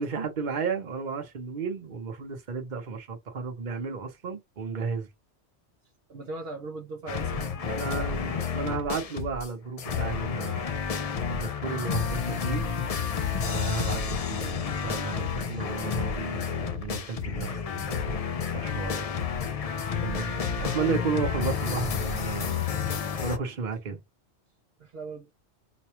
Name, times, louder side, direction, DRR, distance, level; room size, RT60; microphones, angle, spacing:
voice 1, 0.0-5.1 7.6-10.8 11.3-12.7 13.4-18.1 18.5-19.1 19.9-22.7 23.2-24.0, right 5 dB, 45° right, 0.9 m, -33 dB
voice 2, 5.8-8.2 20.3-20.5 23.9-24.0 24.8-25.3, right 3 dB, 65° right, 0.9 m, -40 dB
sound 1, 7.1-9.5 9.8-23.4, left 6 dB, 55° left, 0.4 m, -30 dB
4.1 x 2.2 x 3.0 m
omnidirectional pair, 1.1 m